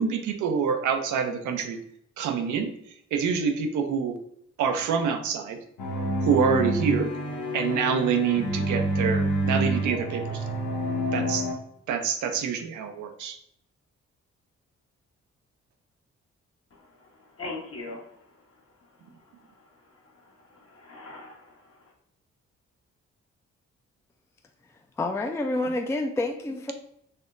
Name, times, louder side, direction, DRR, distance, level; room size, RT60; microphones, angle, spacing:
voice 1, 0.0-1.8 2.2-2.7 3.1-4.2 4.6-5.6 6.2-7.1 7.5-10.5 11.1-11.5 11.9-13.4, right 6 dB, 80° right, 6 dB, 0.5 m, -26 dB
sound 1, 5.8-11.5, equal, 80° left, 0.8 m, -27 dB
voice 2, 16.7-17.1 17.4-18.2 20.1-21.9, left 2 dB, 55° left, -1 dB, 1.2 m, -41 dB
voice 3, 25.0-26.7, left 2 dB, 10° left, 4 dB, 0.4 m, -28 dB
4.3 x 2.9 x 2.5 m, 0.70 s
supercardioid pair, 55°, 29 cm